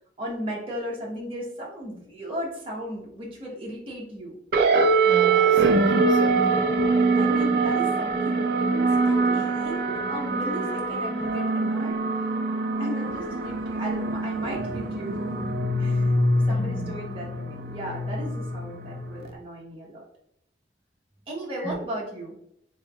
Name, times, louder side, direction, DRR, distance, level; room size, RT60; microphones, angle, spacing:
voice 1, 0.2-4.4 7.1-12.4 12.8-15.4 15.8-20.0 21.3-22.4, equal, 30° right, -4 dB, 1.0 m, -36 dB
sound 1, 4.5-19.3, right 3 dB, 55° right, 0.5 m, -24 dB
voice 2, 5.0-6.6 16.5-16.9 21.6-21.8, equal, 5° right, -6 dB, 0.6 m, -35 dB
4.0 x 3.2 x 2.3 m, 0.74 s
head